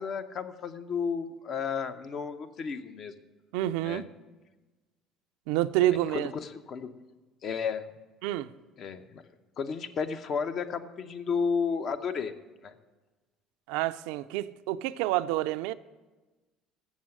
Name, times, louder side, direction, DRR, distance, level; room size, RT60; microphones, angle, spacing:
voice 1, 0.0-3.1 3.8-4.1 6.1-6.9 7.4-7.9 8.8-9.2 9.6-12.3 12.6-12.7, left 6 dB, 50° left, 0.7 m, -32 dB
voice 2, 3.5-4.0 5.5-6.3 8.2-8.5 13.7-15.7, right 14 dB, 80° right, 0.3 m, -28 dB
7.3 x 7.1 x 7.6 m
supercardioid pair, 80°, 0 cm